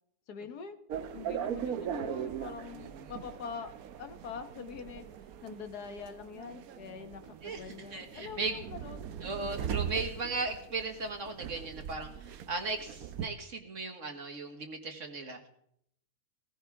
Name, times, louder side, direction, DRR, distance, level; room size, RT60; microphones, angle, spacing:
voice 1, 0.3-0.8 1.1-3.7 4.0-5.0 5.4-9.1, left 6 dB, 80° left, 9 dB, 1.7 m, -44 dB
sound 1, 0.9-13.3, right 9 dB, 70° right, 1.2 m, -40 dB
voice 2, 2.7-3.1 7.4-7.7 7.9-8.6 9.2-15.5, right 3 dB, 50° right, 5 dB, 2.0 m, -37 dB
18.5 x 15.0 x 3.5 m, 0.71 s
omnidirectional pair, 1.7 m